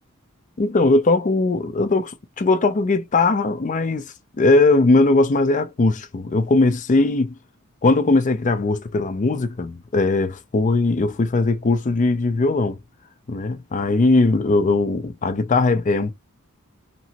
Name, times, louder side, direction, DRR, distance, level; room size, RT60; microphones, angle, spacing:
voice 1, 0.6-7.3 7.8-12.8 13.3-16.1, left 3 dB, 35° left, 0.5 m, -19 dB
3.0 x 2.8 x 2.8 m
head